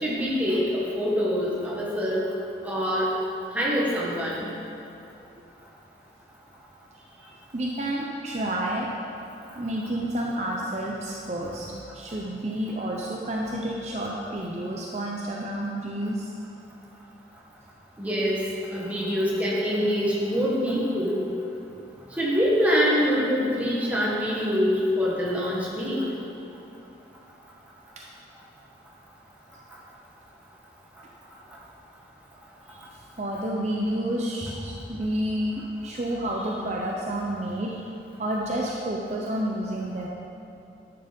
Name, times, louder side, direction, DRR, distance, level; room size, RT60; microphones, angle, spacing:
voice 1, 0.0-2.2 2.6-3.1 3.5-4.5 18.0-18.4 18.7-21.2 22.2-26.0, equal, 10° right, -6 dB, 1.7 m, -25 dB
voice 2, 7.1-8.9 9.6-16.3 32.7-32.8 33.2-37.8 38.2-40.1, right 1 dB, 40° right, -2 dB, 0.7 m, -30 dB
10.5 x 6.8 x 5.3 m, 2.8 s
head